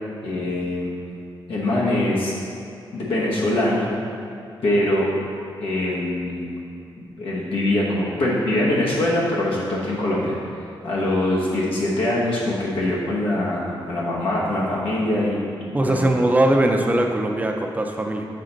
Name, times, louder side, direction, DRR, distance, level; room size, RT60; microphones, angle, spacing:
voice 1, 0.2-0.9 1.5-2.3 2.9-3.9 4.6-5.1 5.6-6.6 7.2-10.4 10.8-15.4 15.9-16.1, left 1 dB, 80° left, -6 dB, 1.1 m, -23 dB
voice 2, 15.7-18.3, right 1 dB, 15° right, 2 dB, 0.6 m, -20 dB
6.5 x 4.2 x 3.9 m, 2.6 s
cardioid pair, 85°, 9 cm